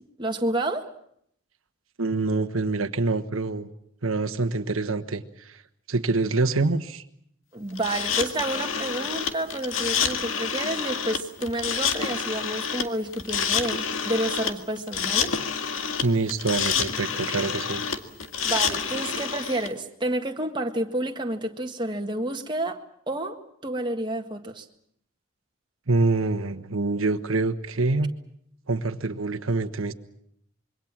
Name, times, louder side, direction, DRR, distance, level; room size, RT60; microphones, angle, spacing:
voice 1, 0.2-0.9 7.5-15.3 18.4-22.8 23.1-24.7, right 1 dB, 20° right, 3 dB, 1.7 m, -29 dB
voice 2, 2.0-3.7 4.0-5.6 5.9-7.0 16.0-17.8 25.9-28.1 28.7-29.9, right 3 dB, 85° right, 7 dB, 1.4 m, -25 dB
sound 1, 7.8-19.7, left 6 dB, 75° left, 1.9 m, -28 dB
26.0 x 23.0 x 7.4 m, 0.70 s
head